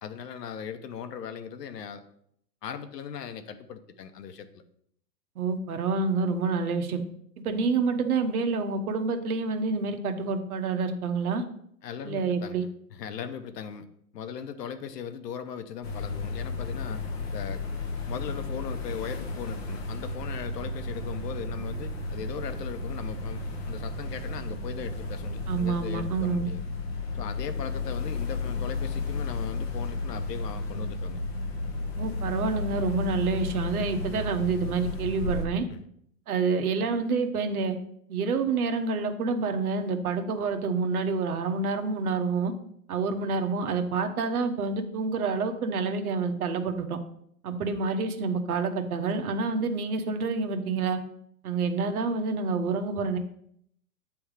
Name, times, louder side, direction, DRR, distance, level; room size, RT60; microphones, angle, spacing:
voice 1, 0.0-2.0 2.6-4.6 11.8-13.9 14.1-17.0 17.3-17.6 18.1-26.7 27.1-31.2 35.7-35.8, left 7 dB, 75° left, 9 dB, 0.9 m, -38 dB
voice 2, 5.4-7.0 7.4-11.4 12.0-12.6 25.5-26.5 32.0-35.7 36.3-37.8 38.1-42.5 42.9-47.0 47.4-51.0 51.4-53.2, right 4 dB, 60° right, 6 dB, 1.0 m, -28 dB
sound 1, 15.8-35.5, left 3 dB, 40° left, 0.9 m, -33 dB
8.9 x 3.5 x 4.8 m, 0.69 s
hypercardioid pair, 170°, 49 cm